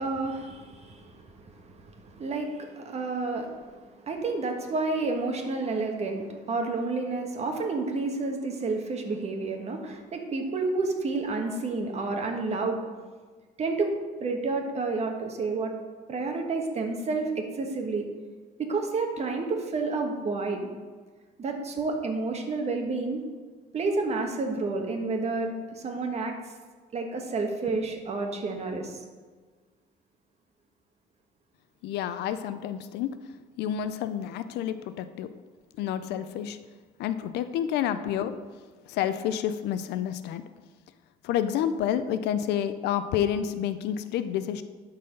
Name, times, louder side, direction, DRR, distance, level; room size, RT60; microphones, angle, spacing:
voice 1, 0.0-12.8 13.6-13.9 14.2-15.7 16.1-18.0 18.6-20.7 21.4-23.2 23.7-26.3 26.9-29.0, right 3 dB, 40° right, 3 dB, 1.4 m, -30 dB
voice 2, 31.8-33.1 33.6-35.3 35.8-36.6 37.0-38.4 38.9-40.4 41.2-44.6, left 10 dB, 80° left, 11 dB, 0.5 m, -29 dB
11.5 x 4.2 x 5.2 m, 1.4 s
cardioid pair, 110°, 17 cm